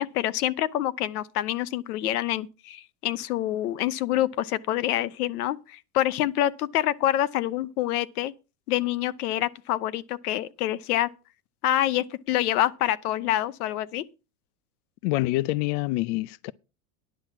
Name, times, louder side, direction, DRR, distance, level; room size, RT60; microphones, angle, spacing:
voice 1, 0.0-8.3 8.7-11.1 11.6-14.0, left 13 dB, 90° left, 0.8 m, -26 dB
voice 2, 15.0-16.5, left 19 dB, 55° left, 0.5 m, -26 dB
10.5 x 5.8 x 7.3 m
supercardioid pair, 130°, 43 cm